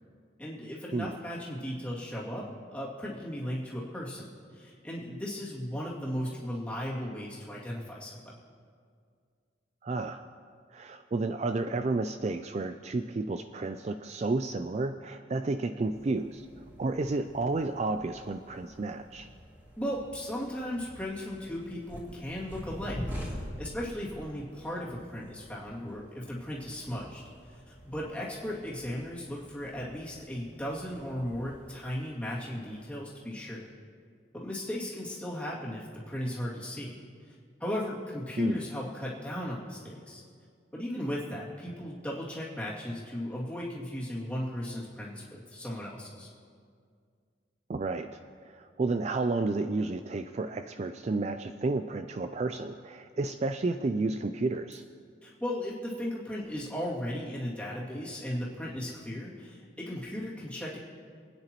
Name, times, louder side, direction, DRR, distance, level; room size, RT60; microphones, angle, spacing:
voice 1, 0.4-8.4 19.8-33.7 34.3-37.0 37.2-37.3 37.6-40.2 40.7-46.3 55.2-60.8, equal, 5° left, -7 dB, 2.4 m, -36 dB
voice 2, 9.8-10.2 10.7-16.5 16.8-19.3 38.4-38.6 47.7-48.2 48.5-54.8, right 3 dB, 35° right, 8 dB, 0.3 m, -31 dB
sound 1, 15.9-33.3, equal, 10° right, 2.4 m, -46 dB
29.0 x 9.7 x 3.0 m, 2.1 s
head